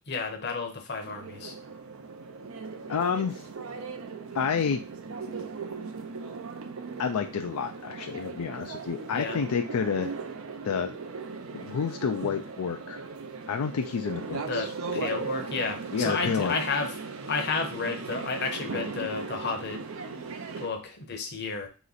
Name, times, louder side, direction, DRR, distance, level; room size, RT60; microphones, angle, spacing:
voice 1, 0.1-1.5 9.1-9.4 14.4-16.9 17.3-19.8 20.6-21.7, left 4 dB, 50° left, 5 dB, 0.8 m, -31 dB
sound 1, 1.0-20.7, right 4 dB, 70° right, 0.5 m, -38 dB
voice 2, 2.9-3.4 4.3-4.8 7.0-10.1 10.6-10.9 11.5-13.0 13.5-14.7 14.9-15.0 15.9-16.5, left 6 dB, 85° left, 5 dB, 0.4 m, -29 dB
3.1 x 3.1 x 3.9 m, 0.32 s
head